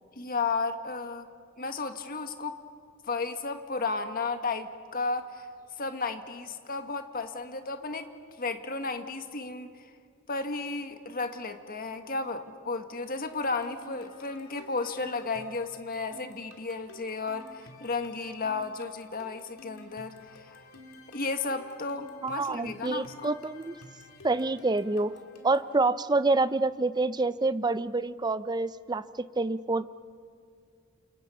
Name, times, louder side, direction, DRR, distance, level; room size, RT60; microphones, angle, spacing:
voice 1, 0.1-1.3 1.6-2.6 3.0-5.5 5.8-8.1 8.4-9.7 10.3-20.6 21.1-23.3, left 3 dB, 45° left, 7 dB, 1.5 m, -33 dB
sound 1, 13.4-25.7, left 1 dB, 90° left, 3.0 m, -52 dB
voice 2, 22.2-23.7 24.2-25.1 25.4-29.8, right 3 dB, 20° right, 14 dB, 0.5 m, -27 dB
29.0 x 28.0 x 5.6 m, 2.3 s
head